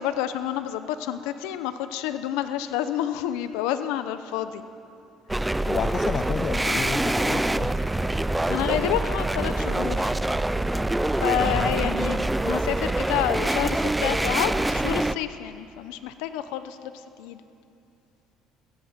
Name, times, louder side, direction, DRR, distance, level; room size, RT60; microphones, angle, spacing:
voice 1, 0.0-4.6 8.5-10.1 11.2-16.9 17.2-17.4, left 11 dB, 90° left, 11 dB, 0.8 m, -29 dB
sound 1, 5.3-15.2, right 1 dB, 10° right, 0.5 m, -25 dB
voice 2, 5.7-7.9 11.4-11.7, left 7 dB, 45° left, 10 dB, 0.7 m, -31 dB
23.0 x 15.5 x 7.4 m, 2.6 s
cardioid pair, 110°, 0 cm